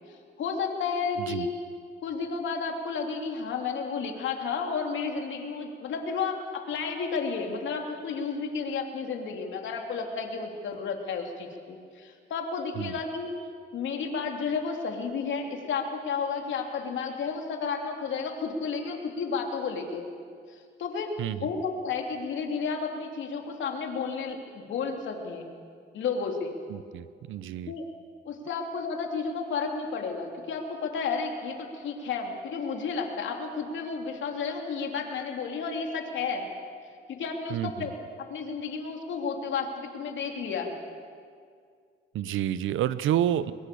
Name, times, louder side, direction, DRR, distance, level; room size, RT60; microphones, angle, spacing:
voice 1, 0.4-1.5 2.0-13.3 13.7-20.1 20.5-21.1 21.4-25.5 25.9-26.5 27.7-27.9 28.2-36.5 37.1-37.9 38.3-40.7, left 5 dB, 70° left, 3 dB, 3.3 m, -32 dB
voice 2, 21.2-21.5 26.7-27.7 37.5-37.7 42.1-43.5, right 11 dB, 80° right, 15 dB, 0.9 m, -29 dB
23.0 x 22.0 x 7.0 m, 2.2 s
cardioid pair, 90°, 20 cm